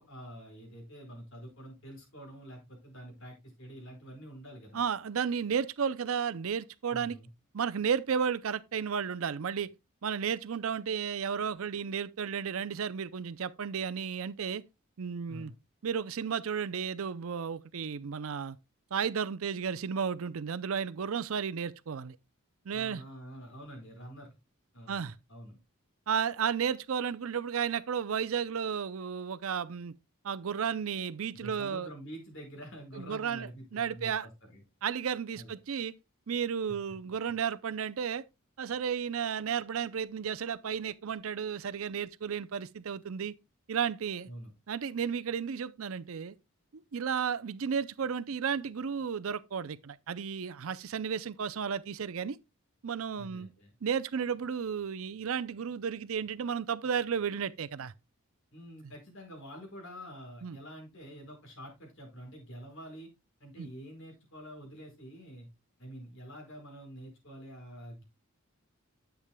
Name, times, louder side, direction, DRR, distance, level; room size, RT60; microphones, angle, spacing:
voice 1, 0.0-4.8 6.9-7.3 15.3-15.5 22.7-24.3 24.7-25.6 31.3-34.6 35.3-35.5 44.3-44.5 53.2-53.7 58.5-63.1 63.4-65.5 65.8-68.0, equal, 60° left, 5.0 m, -47 dB
voice 2, 4.7-7.2 7.5-9.7 10.0-14.6 15.0-15.5 15.8-18.6 18.9-22.2 22.7-23.0 24.9-25.1 26.1-29.9 30.2-31.9 32.9-34.3 34.8-35.9 36.3-38.2 38.6-43.3 43.7-44.3 44.7-46.3 46.7-52.4 52.8-53.5 53.8-57.9 60.4-60.6 63.6-63.7, right 7 dB, 70° right, 0.5 m, -33 dB
10.5 x 8.2 x 2.2 m
head